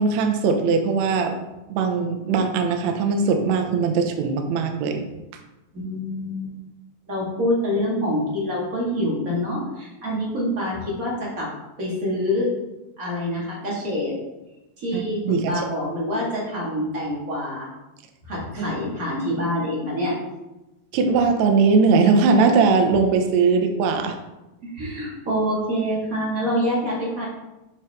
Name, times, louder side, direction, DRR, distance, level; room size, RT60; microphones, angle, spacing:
voice 1, 0.0-1.4 1.7-5.0 14.9-15.7 18.6-18.7 20.9-24.2, right 4 dB, 80° right, 5 dB, 1.6 m, -20 dB
voice 2, 5.7-6.5 7.1-11.5 11.8-12.5 13.0-14.1 14.8-17.7 18.3-20.1 24.6-27.3, equal, 35° right, -5 dB, 1.5 m, -26 dB
7.3 x 4.9 x 3.4 m, 1.0 s
omnidirectional pair, 4.1 m